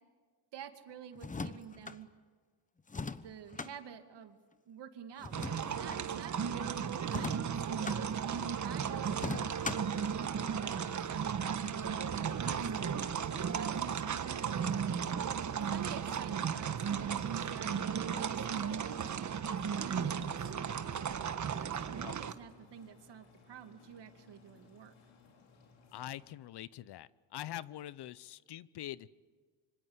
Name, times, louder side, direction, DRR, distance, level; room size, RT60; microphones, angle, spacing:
voice 1, 0.5-2.1 3.2-4.4 4.7-9.5 10.3-12.9 13.2-14.7 15.6-19.4 19.8-24.9, right 8 dB, 60° right, 6 dB, 2.5 m, -50 dB
sound 1, 1.2-2.0 2.9-3.7 5.2-6.0 7.1-8.0 9.1-10.0, left 4 dB, 15° left, 1.0 m, -40 dB
sound 2, 5.3-22.3, right 7 dB, 40° right, 1.3 m, -35 dB
sound 3, 6.6-26.3, left 5 dB, 80° left, 5.2 m, -62 dB
voice 2, 25.9-29.1, left 13 dB, 60° left, 18 dB, 0.8 m, -44 dB
26.0 x 25.0 x 8.1 m, 1.5 s
cardioid pair, 100°, 46 cm